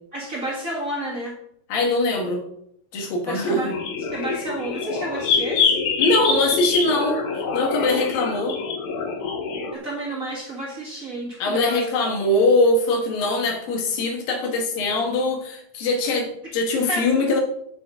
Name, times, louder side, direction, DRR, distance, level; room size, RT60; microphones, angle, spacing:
voice 1, 0.1-1.3 3.3-3.7 4.1-5.7 9.7-12.0 16.9-17.1, right 1 dB, 35° right, -3 dB, 1.4 m, -30 dB
voice 2, 1.7-2.4 2.9-3.7 6.0-7.2 7.5-8.6 11.4-17.4, left 2 dB, 80° left, 2 dB, 3.4 m, -22 dB
sound 1, 3.7-9.7, left 5 dB, 65° left, 2.3 m, -25 dB
8.5 x 8.1 x 3.7 m, 0.72 s
omnidirectional pair, 4.0 m